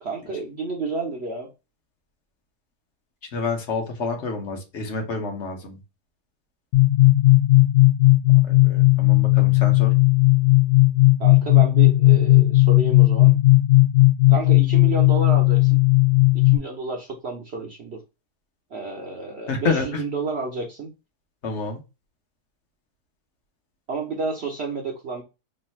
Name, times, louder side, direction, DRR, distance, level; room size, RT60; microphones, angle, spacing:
voice 1, 0.0-1.5 11.2-13.3 14.3-15.8 16.4-18.0 18.7-20.9 23.9-25.2, right 3 dB, 55° right, 1 dB, 0.8 m, -30 dB
voice 2, 3.3-5.8 8.5-9.9 19.5-20.0 21.4-21.8, left 4 dB, 50° left, 4 dB, 1.1 m, -28 dB
sound 1, 6.7-16.6, left 19 dB, 75° left, 1.1 m, -16 dB
3.2 x 2.5 x 4.2 m, 0.27 s
omnidirectional pair, 1.6 m